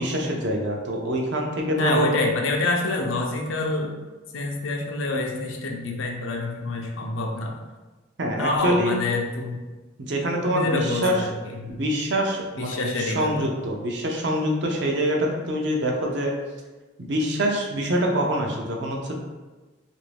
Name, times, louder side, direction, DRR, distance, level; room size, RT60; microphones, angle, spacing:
voice 1, 0.0-2.1 8.2-9.0 10.1-11.2 11.7-16.3 17.0-19.1, equal, 65° right, 0 dB, 0.5 m, -25 dB
voice 2, 1.8-3.9 4.3-7.6 8.4-9.6 10.5-11.8 12.6-13.5, left 2 dB, 80° left, 1 dB, 0.5 m, -27 dB
2.9 x 2.6 x 3.3 m, 1.2 s
head